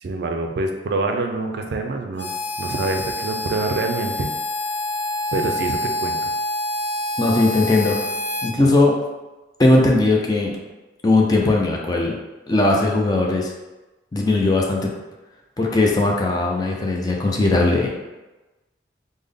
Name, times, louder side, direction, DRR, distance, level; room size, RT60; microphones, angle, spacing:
voice 1, 0.0-2.3 2.6-4.3 5.3-6.3, right 2 dB, 60° right, 4 dB, 0.4 m, -25 dB
Harmonica, 2.2-8.5, left 1 dB, 70° left, 0.7 m, -27 dB
voice 2, 7.2-8.0 8.4-9.0 9.6-10.5 11.0-12.2 12.5-13.5 14.1-14.9 15.6-17.9, left 2 dB, 20° left, -1 dB, 0.4 m, -18 dB
3.5 x 2.1 x 3.6 m, 1.1 s
head